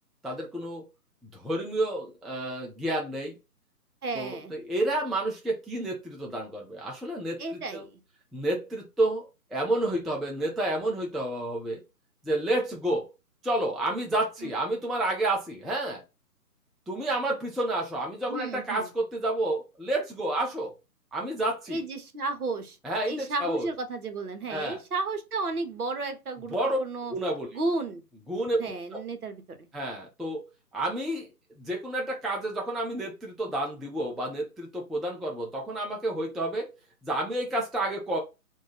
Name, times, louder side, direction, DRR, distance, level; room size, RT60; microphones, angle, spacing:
voice 1, 0.2-0.9 1.3-3.4 4.1-7.4 7.7-7.8 8.3-11.8 12.2-13.1 13.4-16.0 16.9-20.7 21.1-21.8 22.8-23.7 24.5-24.8 26.5-26.8 27.1-27.5 28.3-28.7 29.7-30.4 30.7-31.3 31.6-36.7 37.0-38.2, right 1 dB, ahead, 0.3 m, -30 dB
voice 2, 4.0-4.5 7.4-8.0 14.4-14.5 18.3-18.9 21.7-22.8 23.0-27.1 27.5-28.0 28.6-29.7, right 3 dB, 65° right, 1.1 m, -33 dB
2.6 x 2.4 x 4.0 m
figure-of-eight pair, 140°, 47 cm